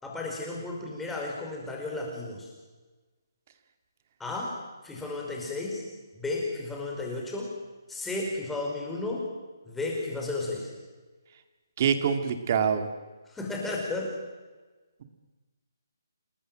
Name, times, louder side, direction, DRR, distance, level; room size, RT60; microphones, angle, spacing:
voice 1, 0.0-2.5 4.2-4.6 4.8-5.9 6.1-7.5 7.9-9.3 9.7-10.7 13.3-14.2, left 2 dB, 5° left, -1 dB, 5.0 m, -33 dB
voice 2, 11.8-12.9, right 7 dB, 35° right, 8 dB, 2.4 m, -25 dB
29.0 x 18.5 x 7.7 m, 1.3 s
hypercardioid pair, 165°, 2 cm